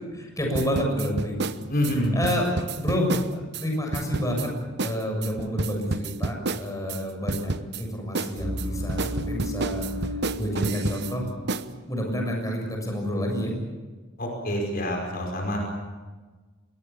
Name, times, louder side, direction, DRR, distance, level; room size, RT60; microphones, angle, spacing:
voice 1, 0.1-1.7 2.1-3.2 3.6-4.5 4.8-7.5 7.8-9.8 10.4-11.3 11.8-13.5, equal, 15° left, 1 dB, 6.9 m, -29 dB
sound 1, 0.5-3.7 3.9-4.5 4.8-5.0 5.2-7.0 7.3-7.8 8.1-11.1 11.5-11.7, right 3 dB, 55° right, 0.9 m, -30 dB
voice 2, 1.7-2.2 14.2-15.6, equal, 50° left, 1 dB, 5.3 m, -26 dB
sound 2, 8.4-11.8 12.1-12.4, left 1 dB, 75° right, 4.7 m, -34 dB
25.5 x 22.0 x 7.1 m, 1.3 s
head